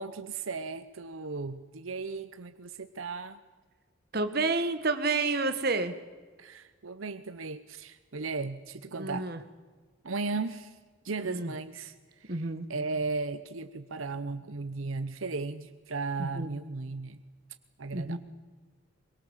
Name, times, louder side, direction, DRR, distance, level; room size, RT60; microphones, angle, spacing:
voice 1, 0.0-3.4 6.4-9.3 10.0-10.8 11.0-11.9 12.2-17.2 17.8-18.2, right 3 dB, 85° right, 11 dB, 0.9 m, -36 dB
voice 2, 4.1-5.9 9.0-9.4 11.2-11.5 12.3-12.7 16.2-16.5 17.9-18.2, right 3 dB, 50° right, 9 dB, 1.6 m, -29 dB
23.0 x 22.5 x 7.3 m, 1.4 s
head